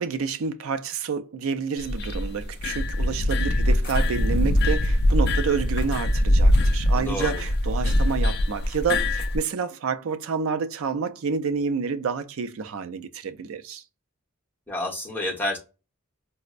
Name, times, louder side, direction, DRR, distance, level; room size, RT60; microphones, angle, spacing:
voice 1, 0.0-13.8, right 5 dB, 65° right, 0.4 m, -29 dB
sound 1, 1.8-9.4, left 1 dB, 45° left, 0.4 m, -22 dB
voice 2, 6.9-7.3 14.7-15.6, left 1 dB, 10° left, 1.0 m, -29 dB
4.2 x 2.0 x 2.4 m
head